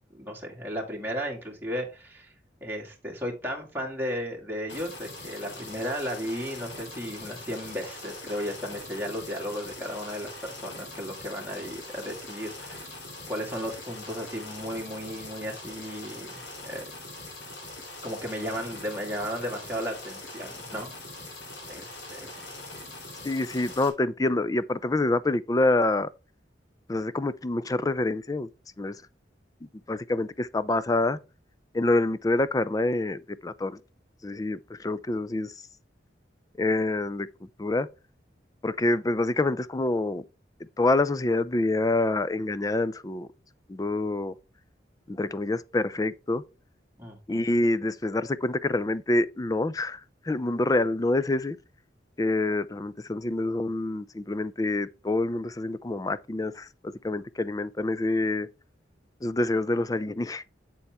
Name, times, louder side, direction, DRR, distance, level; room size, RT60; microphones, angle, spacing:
voice 1, 0.1-2.3 2.6-13.0 13.3-16.8 18.0-20.9 21.7-22.4 47.0-47.5, equal, 10° right, 2.0 m, -35 dB
sound 1, 4.7-23.9, left 2 dB, 75° left, 2.9 m, -42 dB
voice 2, 23.2-26.1 26.9-28.5 28.8-29.0 29.9-31.2 31.7-33.8 34.2-35.5 36.6-37.3 37.6-37.9 38.6-40.2 40.8-43.3 43.7-44.3 45.1-46.4 47.3-50.0 50.3-51.6 52.2-58.5 59.2-60.4, left 2 dB, 20° left, 0.4 m, -26 dB
7.7 x 7.0 x 3.5 m
head